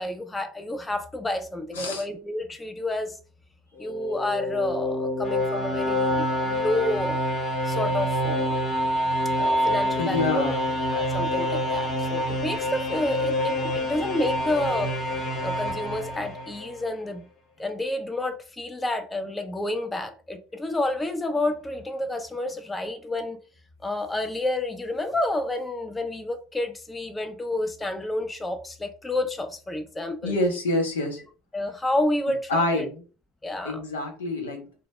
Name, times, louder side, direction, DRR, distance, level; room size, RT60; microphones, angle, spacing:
voice 1, 0.0-3.1 3.8-7.2 7.6-8.5 9.4-10.6 10.9-14.9 15.4-17.3 17.6-23.4 23.8-30.4 31.5-32.9 33.4-33.8, left 1 dB, 15° left, 0.4 m, -29 dB
voice 2, 1.7-2.0 10.0-10.7 30.2-31.2 32.5-32.9 33.6-34.6, left 2 dB, 85° left, 0.6 m, -26 dB
sound 1, 3.8-16.8, equal, 40° left, 0.9 m, -27 dB
2.1 x 2.0 x 2.9 m
hypercardioid pair, 75°, 0 cm